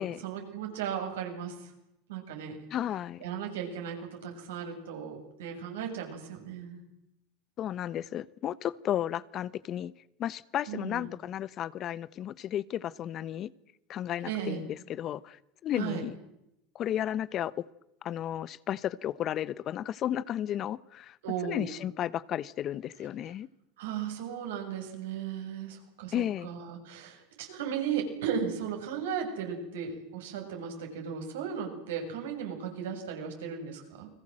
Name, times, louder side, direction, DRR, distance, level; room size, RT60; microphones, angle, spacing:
voice 1, 0.0-1.7 2.1-2.6 3.2-6.8 10.7-11.1 14.2-14.6 15.7-16.0 21.2-21.7 23.8-34.1, right 7 dB, 80° right, 3 dB, 7.2 m, -36 dB
voice 2, 2.7-3.2 7.6-9.9 10.2-13.5 13.9-16.1 16.7-17.6 18.0-21.2 21.4-23.5 26.1-26.5, left 11 dB, 45° left, 19 dB, 1.0 m, -33 dB
29.5 x 21.5 x 7.7 m, 0.84 s
hypercardioid pair, 90°, 0 cm